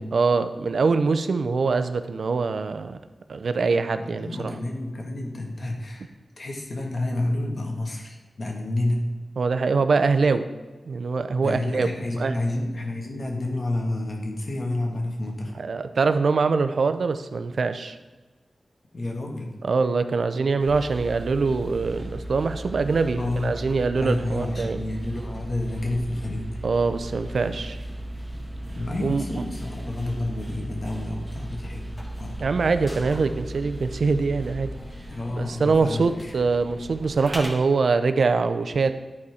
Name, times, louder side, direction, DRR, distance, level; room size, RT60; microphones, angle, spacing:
voice 1, 0.0-3.0 3.3-4.5 9.4-10.5 10.9-11.9 12.2-12.4 15.6-18.0 19.6-24.8 26.6-27.8 29.0-29.4 32.4-34.7 35.4-38.9, right 4 dB, 75° right, 10 dB, 0.5 m, -23 dB
voice 2, 3.9-6.1 6.4-9.1 11.4-15.6 18.9-19.5 23.2-23.6 24.0-26.5 28.7-32.4 35.1-36.4, left 1 dB, 55° left, 1 dB, 1.6 m, -29 dB
sound 1, 20.6-37.5, right 1 dB, 10° left, 2.0 m, -36 dB
10.5 x 4.3 x 4.9 m, 1.2 s
wide cardioid pair, 75°, 0 cm